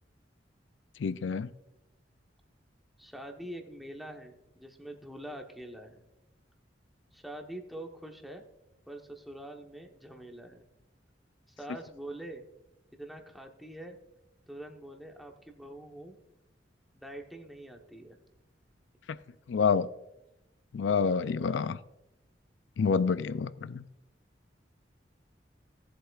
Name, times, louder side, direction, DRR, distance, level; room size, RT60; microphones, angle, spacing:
voice 1, 1.0-1.5 19.1-19.2 19.5-19.9 20.7-21.8 22.8-23.8, left 5 dB, 90° left, 15 dB, 0.4 m, -28 dB
voice 2, 3.0-6.0 7.1-8.5 8.9-10.6 11.5-12.4 12.9-14.0 14.5-16.2 16.9-18.2, right 1 dB, ahead, 2 dB, 1.1 m, -44 dB
17.0 x 7.9 x 2.4 m, 0.92 s
head